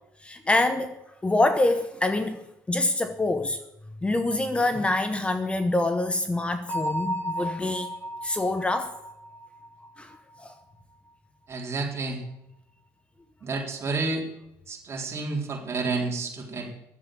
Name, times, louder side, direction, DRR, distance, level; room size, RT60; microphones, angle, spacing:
voice 1, 0.2-3.6 4.0-7.9 8.2-9.0 10.0-10.1 10.4-10.6, left 2 dB, 15° left, 0.9 m, -26 dB
Bell, 6.7-10.3, equal, 30° left, 4.2 m, -34 dB
voice 2, 11.5-12.2 13.4-14.2 14.7-16.7, right 3 dB, 35° right, 3.7 m, -30 dB
11.5 x 7.7 x 9.9 m
cardioid pair, 100°, 7 cm